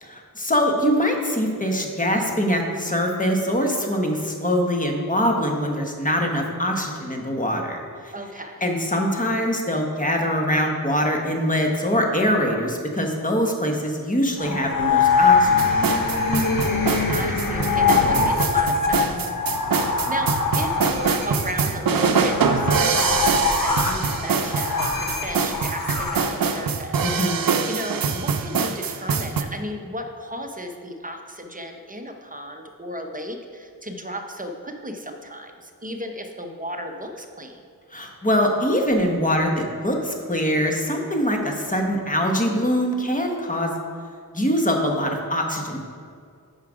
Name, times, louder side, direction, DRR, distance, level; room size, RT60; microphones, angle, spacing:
voice 1, 0.0-8.1 8.6-15.7 27.0-27.4 37.9-43.7 44.3-45.9, equal, 20° left, 1 dB, 1.1 m, -23 dB
voice 2, 8.1-8.6 16.4-19.3 20.1-37.6, equal, 25° right, 4 dB, 0.8 m, -35 dB
sound 1, 14.4-26.6, left 4 dB, 65° left, 0.9 m, -23 dB
sound 2, 15.6-29.4, right 5 dB, 65° right, 0.6 m, -24 dB
7.1 x 5.7 x 5.0 m, 2.3 s
wide cardioid pair, 75°, 36 cm